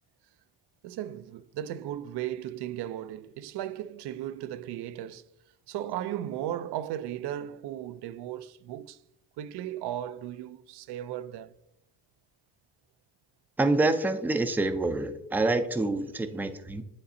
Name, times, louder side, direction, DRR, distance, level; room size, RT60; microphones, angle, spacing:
voice 1, 0.8-5.3 5.7-9.0 9.4-11.5, right 11 dB, 65° right, 0.5 m, -36 dB
voice 2, 13.6-16.8, right 2 dB, 5° right, 0.4 m, -27 dB
9.7 x 4.0 x 2.6 m
cardioid pair, 90°, 44 cm